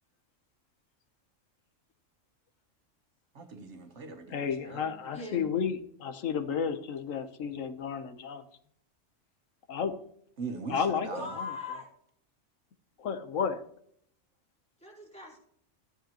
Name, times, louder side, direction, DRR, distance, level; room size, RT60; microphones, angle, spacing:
voice 1, 3.3-4.9 10.4-11.2, right 4 dB, 65° right, 6 dB, 1.4 m, -41 dB
voice 2, 4.3-8.4 9.7-9.9 10.7-11.1 11.4-11.5 13.0-13.6, left 7 dB, 90° left, 9 dB, 1.3 m, -32 dB
voice 3, 5.1-5.5 11.1-11.9 14.8-15.4, left 3 dB, 5° left, -3 dB, 4.5 m, -39 dB
14.5 x 10.0 x 2.9 m, 0.66 s
omnidirectional pair, 1.3 m